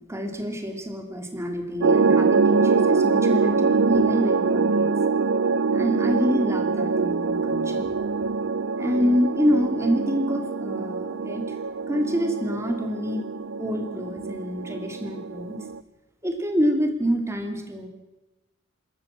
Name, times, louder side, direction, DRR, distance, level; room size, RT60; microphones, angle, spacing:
voice 1, 0.1-4.9 5.7-7.9 8.8-11.5 11.9-13.2 13.6-15.6 16.2-17.9, equal, 15° right, 5 dB, 2.7 m, -27 dB
sound 1, 1.8-15.8, right 4 dB, 65° right, 0.6 m, -24 dB
26.5 x 13.5 x 7.5 m, 1.1 s
head